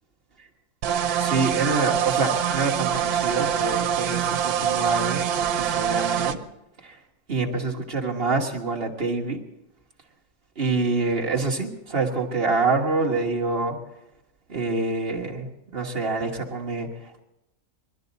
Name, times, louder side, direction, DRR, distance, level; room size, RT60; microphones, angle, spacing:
sound 1, 0.8-6.4, right 9 dB, 90° right, 1.2 m, -25 dB
voice 1, 1.2-6.4 6.8-7.0 7.3-9.4 10.5-13.8 14.5-17.2, right 3 dB, 40° right, -1 dB, 1.7 m, -26 dB
21.5 x 13.0 x 4.0 m, 0.90 s
omnidirectional pair, 1.5 m